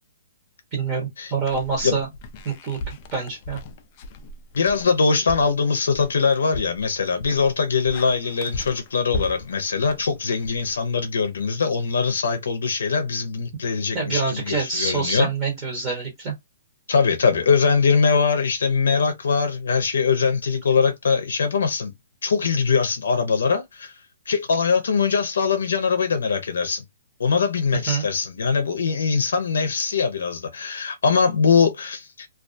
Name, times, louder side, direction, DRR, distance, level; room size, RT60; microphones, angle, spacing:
voice 1, 0.7-2.1 2.4-3.6 13.9-16.3 27.9-28.1, right 4 dB, 20° right, 0.9 m, -26 dB
footsteps bare feet, 1.4-11.3, left 2 dB, 25° left, 0.3 m, -38 dB
voice 2, 4.5-15.3 16.9-21.9 22.2-23.9 24.3-26.8 27.2-32.3, left 5 dB, 85° left, 0.5 m, -22 dB
2.3 x 2.3 x 2.5 m
hypercardioid pair, 175°, 0 cm